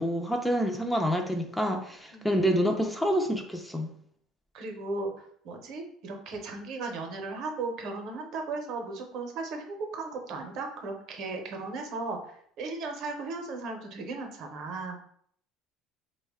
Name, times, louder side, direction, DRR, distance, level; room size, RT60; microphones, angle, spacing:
voice 1, 0.0-3.9, equal, 5° left, 3 dB, 0.3 m, -27 dB
voice 2, 4.5-5.1 5.4-12.2 12.6-15.0, right 3 dB, 55° right, 4 dB, 0.6 m, -36 dB
3.5 x 2.1 x 3.5 m, 0.63 s
cardioid pair, 140°, 0 cm